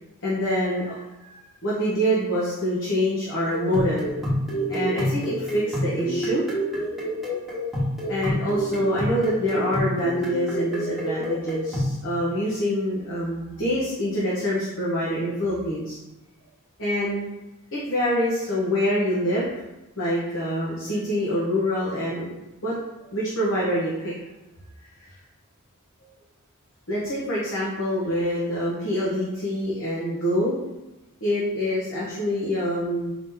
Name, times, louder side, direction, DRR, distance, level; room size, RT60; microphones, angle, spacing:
voice 1, 0.2-4.2 4.7-6.4 8.1-16.0 16.8-17.3 17.7-19.5 20.0-22.7 23.1-24.1 25.0-25.1 26.9-30.6 31.2-33.1, equal, 60° left, -7 dB, 1.0 m, -26 dB
sound 1, 3.5-12.0, equal, ahead, 1.2 m, -27 dB
4.9 x 2.8 x 3.8 m, 1.0 s
head